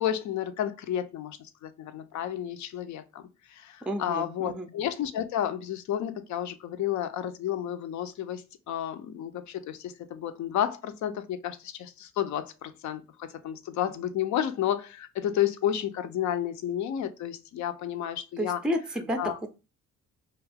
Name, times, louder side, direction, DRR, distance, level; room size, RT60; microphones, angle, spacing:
voice 1, 0.0-18.6 19.2-19.4, left 10 dB, 70° left, 0.5 m, -31 dB
voice 2, 3.9-4.7 18.4-19.5, equal, 5° right, 0.4 m, -31 dB
2.7 x 2.4 x 3.3 m
cardioid pair, 90°, 30 cm